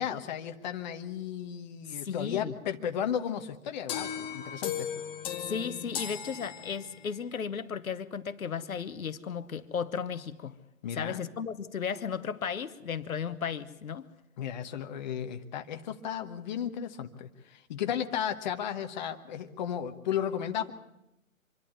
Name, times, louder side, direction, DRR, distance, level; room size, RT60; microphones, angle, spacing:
voice 1, 0.0-4.9 10.8-11.3 14.4-20.7, left 9 dB, 35° left, 6 dB, 1.2 m, -34 dB
voice 2, 1.9-2.5 5.4-10.6 10.9-14.1, left 6 dB, 75° left, 11 dB, 1.2 m, -35 dB
sound 1, 3.9-7.2, left 9 dB, 10° left, 1.1 m, -37 dB
25.5 x 11.5 x 9.6 m, 0.89 s
hypercardioid pair, 150°, 42 cm